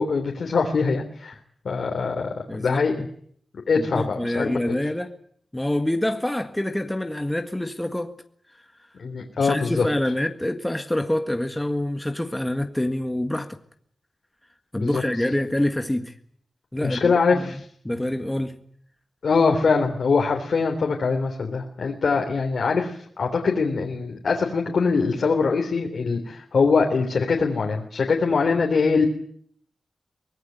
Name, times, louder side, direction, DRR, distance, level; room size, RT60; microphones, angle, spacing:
voice 1, 0.0-1.4 1.7-3.1 3.7-4.8 9.0-9.9 14.8-15.0 16.8-17.6 19.2-29.1, left 4 dB, 70° left, 3.5 m, -23 dB
voice 2, 2.5-2.8 3.8-5.2 5.5-8.1 9.4-13.6 14.7-16.1 16.7-18.6, left 1 dB, 10° left, 1.7 m, -26 dB
24.0 x 19.5 x 9.4 m
wide cardioid pair, 120°, 0 cm